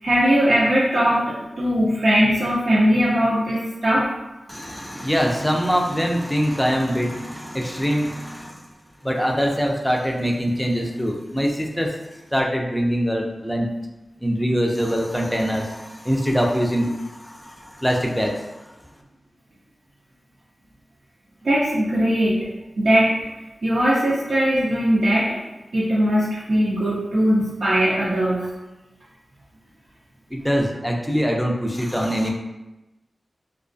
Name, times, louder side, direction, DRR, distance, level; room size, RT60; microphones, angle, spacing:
voice 1, 0.0-4.1 21.4-22.4 22.8-23.1 23.6-25.4 25.7-28.5, equal, 70° right, -9 dB, 0.5 m, -20 dB
voice 2, 4.5-8.6 9.0-11.9 12.3-13.7 14.2-18.6 30.3-32.3, equal, 5° left, 0 dB, 0.4 m, -23 dB
2.3 x 2.2 x 2.5 m, 1.0 s
cardioid pair, 55°, 0 cm